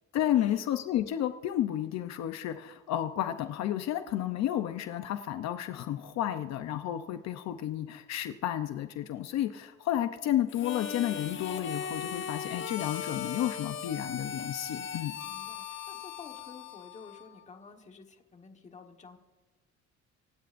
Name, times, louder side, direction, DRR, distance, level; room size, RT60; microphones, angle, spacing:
voice 1, 0.1-15.2, left 12 dB, 65° left, 8 dB, 0.7 m, -31 dB
Harmonica, 10.5-17.4, left 7 dB, 40° left, 1.1 m, -38 dB
voice 2, 15.2-19.2, left 5 dB, 25° left, 4 dB, 1.4 m, -51 dB
27.5 x 16.0 x 2.6 m, 1.3 s
cardioid pair, 160°, 29 cm